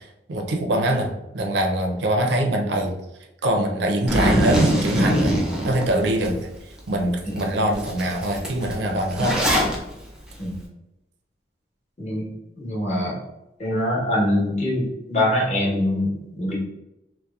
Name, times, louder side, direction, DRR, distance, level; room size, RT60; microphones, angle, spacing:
voice 1, 0.0-2.9 3.4-5.3 5.6-9.4, right 1 dB, 75° right, 3 dB, 0.4 m, -23 dB
Zipper (clothing), 4.1-6.3 6.8-6.9 7.4-7.5 7.7-9.8, equal, 5° right, 0.4 m, -22 dB
voice 2, 12.6-13.2 13.6-16.5, left 1 dB, 40° left, -4 dB, 0.8 m, -23 dB
2.7 x 2.0 x 2.3 m, 0.92 s
head